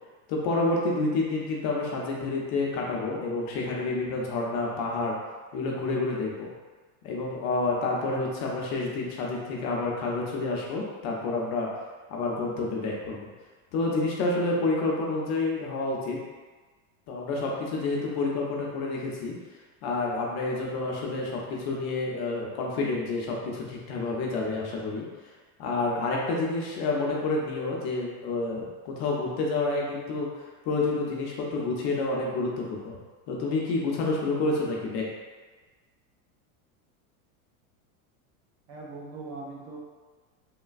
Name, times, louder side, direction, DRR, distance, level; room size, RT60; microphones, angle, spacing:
voice 1, 0.3-5.2 5.5-6.5 7.0-11.7 12.1-13.3 13.7-16.2 17.1-19.3 19.8-25.0 25.6-30.3 30.7-33.0 33.3-35.1, left 3 dB, 40° left, -2 dB, 0.5 m, -29 dB
voice 2, 38.7-39.8, right 3 dB, 35° right, -3 dB, 0.5 m, -40 dB
3.1 x 2.1 x 2.4 m, 1.4 s
supercardioid pair, 140°, 42 cm